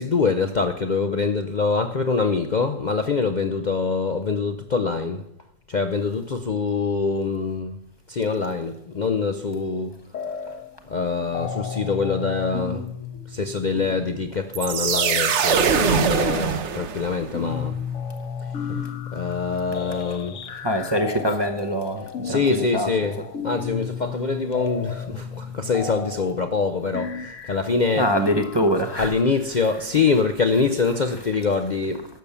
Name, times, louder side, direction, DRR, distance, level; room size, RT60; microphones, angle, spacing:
voice 1, 0.0-5.2 5.7-10.0 10.4-12.9 13.3-17.8 18.4-20.4 22.2-28.2 29.0-32.1, left 4 dB, 75° left, 0.4 m, -25 dB
sound 1, 10.1-10.8 11.0-29.3, left 7 dB, 55° left, 1.1 m, -34 dB
sound 2, 14.5-17.3, right 7 dB, 55° right, 0.9 m, -22 dB
voice 2, 20.5-22.9 28.0-29.1, equal, 30° right, 0.5 m, -24 dB
12.0 x 7.0 x 6.9 m
omnidirectional pair, 1.7 m